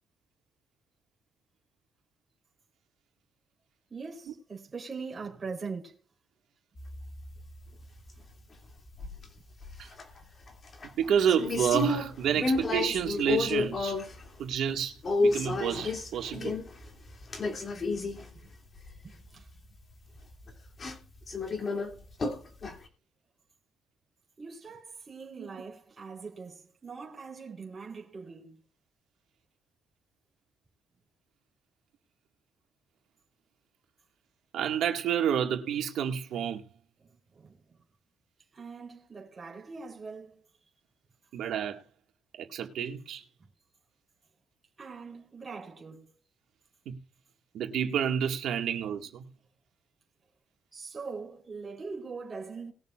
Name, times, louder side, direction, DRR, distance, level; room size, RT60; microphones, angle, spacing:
voice 1, 3.9-6.0 19.0-19.5 24.4-28.6 37.3-37.8 38.5-40.4 44.8-46.1 50.7-52.7, right 4 dB, 30° right, 3.8 m, -42 dB
sound 1, 6.8-8.2 8.9-9.2 9.6-10.2 10.5-14.3 14.5-14.6 15.0-18.4 18.8-19.0 19.5-19.6 20.3-20.5 20.8-21.0 21.2-21.9 22.2-22.8, left 3 dB, 40° left, 2.7 m, -31 dB
voice 2, 11.0-14.0 14.4-14.9 15.2-16.6 25.4-25.5 34.5-36.6 41.3-41.8 42.4-43.2 46.9-47.0 47.5-49.2, right 8 dB, 80° right, 1.9 m, -29 dB
20.5 x 6.8 x 2.5 m
cardioid pair, 90°, 0 cm